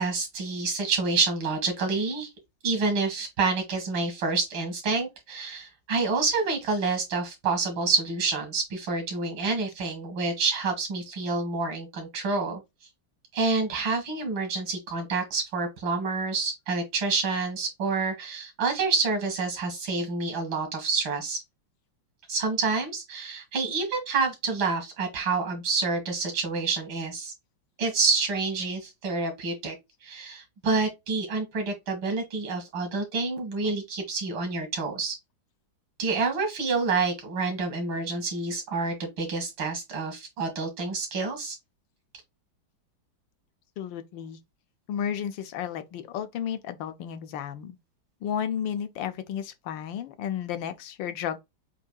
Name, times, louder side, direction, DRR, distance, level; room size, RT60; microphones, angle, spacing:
voice 1, 0.0-2.3 2.6-12.6 13.3-21.4 22.3-27.3 27.8-29.8 30.0-35.1 36.0-41.6, right 4 dB, 85° right, 2.6 m, -28 dB
voice 2, 43.8-44.4 44.9-47.8 48.2-51.4, left 9 dB, 75° left, 1.3 m, -33 dB
7.3 x 2.7 x 2.3 m
omnidirectional pair, 2.1 m